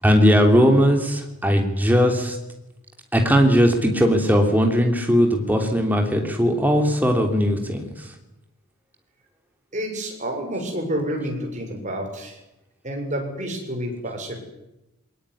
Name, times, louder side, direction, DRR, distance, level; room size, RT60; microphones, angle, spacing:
voice 1, 0.0-2.4 3.1-7.8, equal, 10° right, 3 dB, 3.1 m, -18 dB
voice 2, 9.7-12.4 12.8-14.4, equal, 35° right, 2 dB, 6.6 m, -29 dB
22.0 x 19.0 x 10.0 m, 0.92 s
head